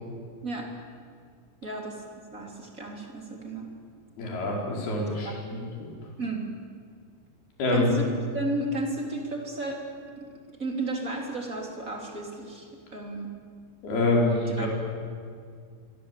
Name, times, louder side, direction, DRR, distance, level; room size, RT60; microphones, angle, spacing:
voice 1, 1.6-2.0 2.3-3.7 5.2-5.6 6.2-6.5 7.7-8.0 8.3-9.8 10.2-10.3 10.6-13.3 14.5-14.7, right 2 dB, 20° right, 1 dB, 3.2 m, -33 dB
voice 2, 4.2-5.9 7.6-7.9 13.8-14.7, left 2 dB, 55° left, -1 dB, 6.9 m, -26 dB
25.5 x 24.0 x 8.5 m, 2.2 s
omnidirectional pair, 5.2 m